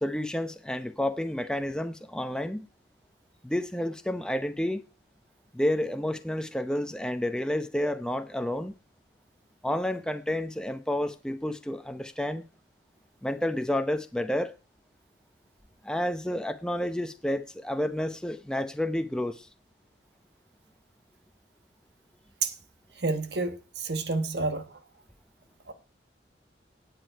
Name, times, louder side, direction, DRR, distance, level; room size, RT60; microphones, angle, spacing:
voice 1, 0.0-2.7 3.4-4.8 5.5-8.7 9.6-12.4 13.2-14.5 15.8-19.5, left 1 dB, 5° left, 0.7 m, -30 dB
voice 2, 23.0-24.8 25.7-25.8, right 3 dB, 65° right, 1.2 m, -30 dB
17.0 x 8.5 x 4.6 m
head